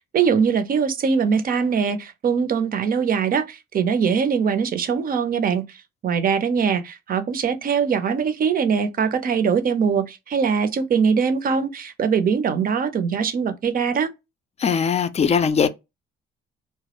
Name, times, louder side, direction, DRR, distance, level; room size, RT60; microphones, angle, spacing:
voice 1, 0.1-14.1, right 6 dB, 45° right, 0.5 m, -22 dB
voice 2, 14.6-15.7, left 6 dB, 35° left, 0.4 m, -20 dB
2.2 x 2.0 x 2.8 m
cardioid pair, 90°, 20 cm